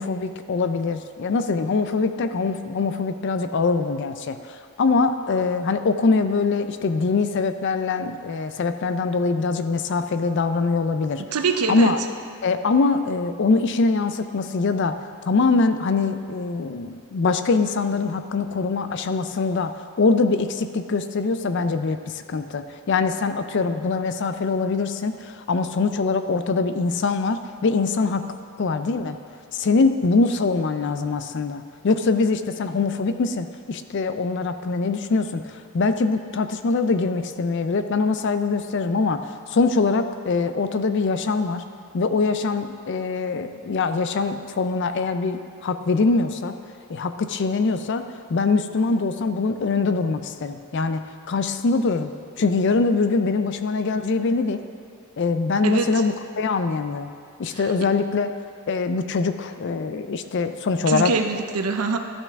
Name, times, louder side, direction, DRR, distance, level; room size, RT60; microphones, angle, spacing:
voice 1, 0.0-11.2 11.7-12.0 12.4-15.0 15.3-28.3 28.6-29.2 29.5-41.6 41.9-46.6 46.9-54.6 55.2-57.1 57.4-58.3 58.7-61.4, left 4 dB, 55° left, 9 dB, 0.4 m, -23 dB
voice 2, 11.3-11.9 55.6-55.9 60.9-62.0, right 4 dB, 85° right, 6 dB, 0.6 m, -23 dB
12.5 x 5.7 x 3.5 m, 2.2 s
head